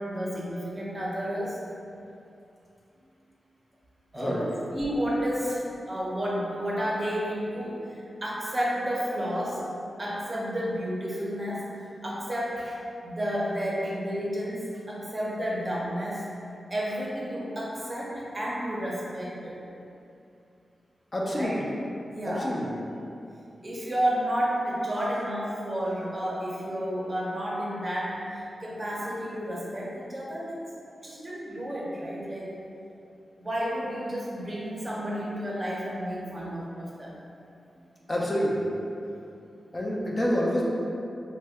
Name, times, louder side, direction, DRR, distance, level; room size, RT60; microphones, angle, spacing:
voice 1, 0.0-1.6 4.1-4.4 4.7-9.6 10.0-11.7 12.0-16.2 16.7-19.6 21.3-21.6 22.1-22.5 23.6-30.6 31.0-32.5 33.4-37.1, equal, 30° right, -5 dB, 0.6 m, -31 dB
voice 2, 4.1-4.5 21.1-21.7 22.2-22.8 38.1-38.7 39.7-40.6, equal, 35° left, -4 dB, 0.5 m, -27 dB
2.6 x 2.1 x 3.4 m, 2.7 s
cardioid pair, 70°, 0 cm